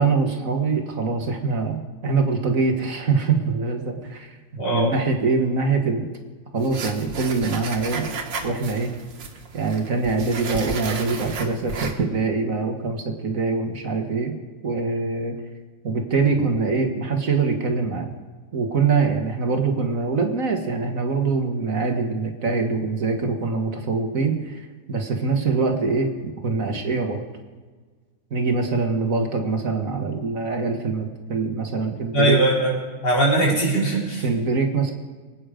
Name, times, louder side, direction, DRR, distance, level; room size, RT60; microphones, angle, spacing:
voice 1, 0.0-4.4 4.7-6.1 6.5-8.1 8.4-8.9 9.5-14.4 14.6-15.4 15.8-18.1 18.5-24.6 24.9-27.2 28.3-32.4 33.5-33.6 34.2-34.9, right 4 dB, 50° right, 4 dB, 1.9 m, -24 dB
voice 2, 4.6-4.9 32.1-32.8 33.0-34.2, right 2 dB, 90° left, -4 dB, 5.0 m, -20 dB
sound 1, 6.6-11.9, right 4 dB, 85° right, 2.2 m, -33 dB
24.5 x 9.0 x 5.1 m, 1.4 s
omnidirectional pair, 1.9 m